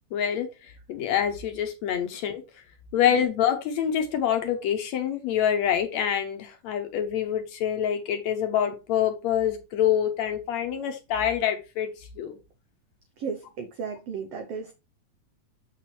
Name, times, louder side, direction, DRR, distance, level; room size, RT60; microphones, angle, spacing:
voice 1, 0.1-2.4 2.9-12.4, left 9 dB, 70° left, 6 dB, 1.9 m, -26 dB
voice 2, 13.2-14.7, right 6 dB, 80° right, 6 dB, 1.4 m, -34 dB
7.0 x 5.9 x 3.1 m, 0.27 s
omnidirectional pair, 3.7 m